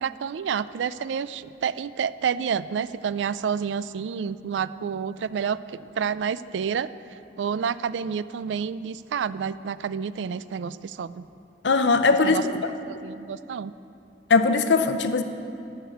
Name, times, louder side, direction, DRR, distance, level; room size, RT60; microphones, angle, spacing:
voice 1, 0.0-6.9 7.4-11.2 12.2-12.4 13.0-13.7, right 7 dB, 85° right, 16 dB, 0.3 m, -29 dB
voice 2, 11.6-12.5 14.3-15.2, left 4 dB, 85° left, 9 dB, 0.7 m, -20 dB
12.5 x 6.7 x 7.7 m, 2.6 s
head